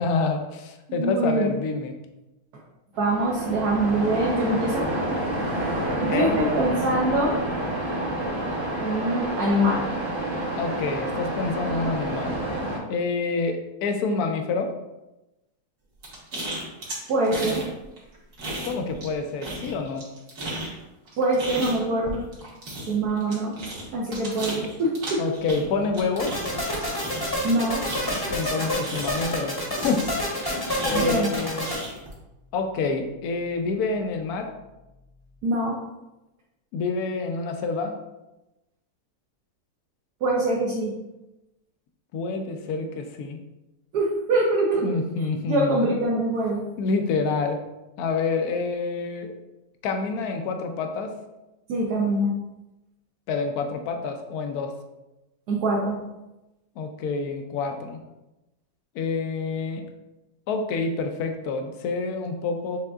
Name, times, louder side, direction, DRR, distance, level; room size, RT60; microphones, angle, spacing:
voice 1, 0.0-1.9 5.9-6.4 10.6-12.4 12.9-14.7 18.6-20.1 25.2-26.4 28.3-29.6 29.8-30.0 30.8-31.7 32.5-34.5 36.7-37.9 42.1-43.4 44.8-45.9 46.8-47.6 48.0-49.3 49.8-51.1 53.3-54.7 56.8-58.0 58.9-59.8 60.5-62.8, left 4 dB, 75° left, 5 dB, 1.1 m, -27 dB
voice 2, 0.9-1.5 3.0-4.8 6.0-7.4 8.8-9.8 17.1-17.6 21.2-22.2 22.9-23.5 23.9-25.2 27.4-27.8 30.9-31.3 35.4-35.8 40.2-40.9 43.9-44.8 45.5-46.6 51.7-52.3 55.5-56.0, right 1 dB, 80° right, -4 dB, 1.3 m, -24 dB
Waves surf, 2.9-12.8, right 1 dB, 30° right, 0.6 m, -28 dB
sound 1, 16.0-17.7 18.0-19.1 19.4-29.4 29.7-32.1, right 1 dB, 60° right, 1.6 m, -34 dB
sound 2, 26.2-31.8, left 1 dB, 20° left, 0.8 m, -28 dB
6.3 x 3.5 x 2.3 m, 0.99 s
omnidirectional pair, 1.7 m